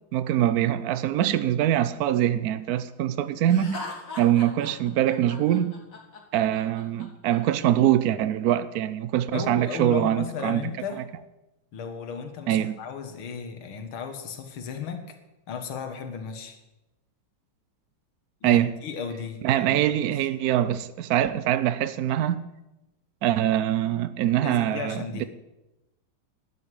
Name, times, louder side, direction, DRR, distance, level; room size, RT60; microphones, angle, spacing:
voice 1, 0.1-3.8 4.2-5.7 6.3-10.6 12.5-12.8 18.4-18.8 19.4-22.4 23.2-25.2, right 11 dB, 80° right, 0.8 m, -23 dB
Laughter, 3.5-7.4, left 2 dB, 40° left, 2.4 m, -40 dB
voice 2, 9.3-11.0 11.7-15.0 15.5-16.6 18.4-20.0 24.4-25.3, left 6 dB, 75° left, 2.3 m, -35 dB
12.5 x 8.1 x 9.8 m
omnidirectional pair, 2.3 m